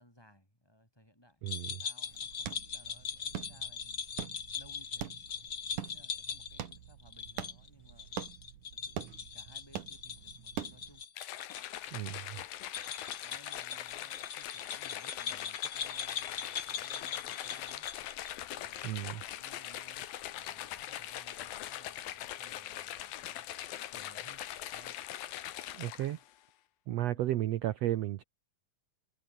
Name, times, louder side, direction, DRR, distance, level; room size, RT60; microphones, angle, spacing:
voice 1, 0.0-1.5 1.8-4.1 4.5-5.2 5.4-8.2 8.7-11.1 11.9-12.3 13.2-17.9 18.5-20.1 20.3-23.5 23.7-24.4 24.7-25.0 27.1-27.3, equal, 5° left, 7.7 m, -61 dB
voice 2, 1.4-1.8 11.9-12.2 18.8-19.2 25.8-26.2 26.9-28.2, right 14 dB, 80° right, 1.4 m, -33 dB
sound 1, 1.5-11.6 11.9-12.0 12.6-18.4, left 7 dB, 45° left, 1.2 m, -41 dB
sound 2, 2.0-11.0, right 10 dB, 65° right, 3.1 m, -44 dB
sound 3, 11.2-26.3, left 13 dB, 90° left, 3.2 m, -42 dB
omnidirectional pair, 4.0 m